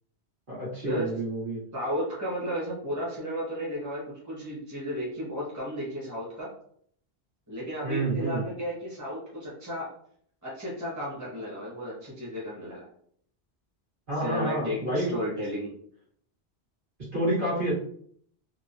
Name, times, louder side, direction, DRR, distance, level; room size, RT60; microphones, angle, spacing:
voice 1, 0.5-1.6 7.8-8.5 14.1-15.1 17.0-17.7, right 1 dB, 50° right, -9 dB, 1.6 m, -29 dB
voice 2, 1.7-6.5 7.5-9.9 10.4-12.8 14.2-15.7, equal, 15° right, -7 dB, 1.1 m, -33 dB
3.5 x 2.1 x 2.5 m, 0.62 s
omnidirectional pair, 1.1 m